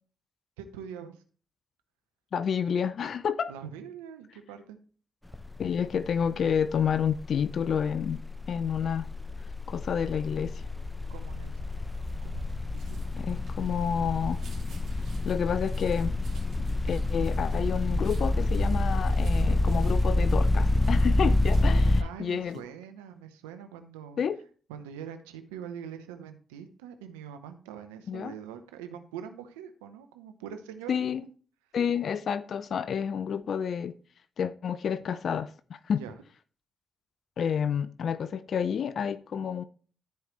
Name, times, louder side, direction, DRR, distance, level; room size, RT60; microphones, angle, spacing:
voice 1, 0.6-1.2 3.5-4.8 11.1-11.7 12.2-13.0 21.8-24.2 24.7-31.0 35.9-36.2, right 8 dB, 90° right, 0.7 m, -43 dB
voice 2, 2.3-3.5 5.6-8.2 8.5-9.1 9.7-10.6 13.2-14.4 15.2-16.1 16.8-22.6 24.2-24.4 28.1-28.3 30.9-31.2 31.7-33.9 34.4-36.0 37.4-39.6, left 7 dB, 65° left, 0.4 m, -29 dB
sound 1, 5.3-5.6 5.9-22.0, left 2 dB, 10° left, 0.6 m, -27 dB
sound 2, 11.7-21.9 22.3-22.6, right 1 dB, 75° right, 2.5 m, -43 dB
13.5 x 4.8 x 3.1 m
hypercardioid pair, 40°, 0 cm